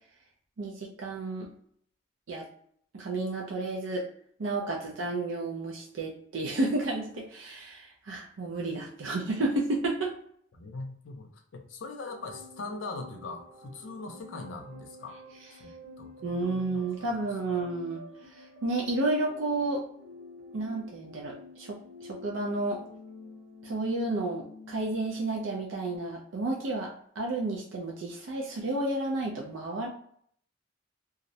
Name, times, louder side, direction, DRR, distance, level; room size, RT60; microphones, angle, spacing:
voice 1, 0.6-1.5 2.3-2.5 2.9-4.1 4.4-10.1 16.2-19.8 20.5-22.8 23.6-26.9 27.2-29.9, right 2 dB, 85° right, -1 dB, 0.5 m, -31 dB
voice 2, 10.5-15.2 15.5-15.7 16.0-16.8, left 3 dB, 85° left, 4 dB, 0.5 m, -41 dB
sound 1, 12.0-26.0, left 1 dB, 60° right, 0.9 m, -49 dB
2.4 x 2.0 x 2.6 m, 0.63 s
head